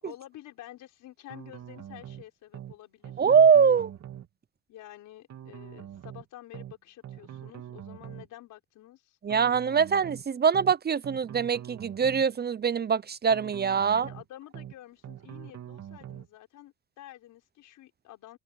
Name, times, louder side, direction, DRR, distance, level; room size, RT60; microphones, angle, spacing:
voice 1, 0.0-3.1 4.7-9.2 13.9-18.4, left 14 dB, 85° left, 5.3 m, -49 dB
sound 1, 1.3-2.2 2.5-2.8 3.0-4.3 5.3-6.2 6.5-6.8 7.0-8.3 9.3-10.2 10.5-10.8 11.0-12.3 13.3-14.2 14.5-14.8 15.0-16.3, right 10 dB, 65° right, 3.0 m, -44 dB
voice 2, 3.2-3.9 9.2-14.1, right 6 dB, 35° right, 0.6 m, -23 dB
cardioid pair, 90°, 30 cm